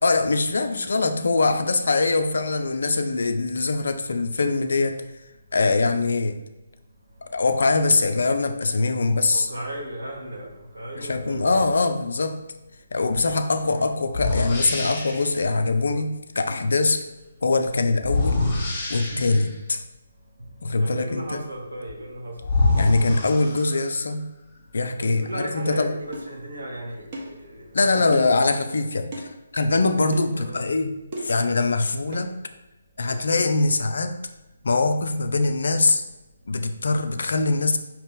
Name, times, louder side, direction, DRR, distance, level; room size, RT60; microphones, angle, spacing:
voice 1, 0.0-5.0 5.5-6.4 7.3-9.5 11.0-12.4 12.9-17.0 17.4-18.5 18.9-19.8 20.6-21.4 22.8-24.3 24.7-25.9 27.7-31.0 31.2-32.3 33.0-34.2 34.6-36.0 36.5-37.8, left 3 dB, 60° left, 8 dB, 0.4 m, -23 dB
voice 2, 9.3-10.5 10.7-11.8 13.6-13.8 20.8-22.3 25.1-28.1 30.3-30.6, right 1 dB, 65° right, -1 dB, 1.2 m, -35 dB
sound 1, 13.3-13.4 14.1-15.3 18.0-19.6 21.9-22.0 22.4-24.0, left 3 dB, 25° left, 1.0 m, -25 dB
sound 2, 26.1-26.3 27.1-27.4 28.1-28.4 29.1-29.3 30.1-30.3 31.1-31.4 32.1-32.3 33.1-33.3, right 1 dB, 35° right, 1.0 m, -35 dB
5.1 x 2.8 x 3.5 m, 1.0 s
figure-of-eight pair, 140°, 0 cm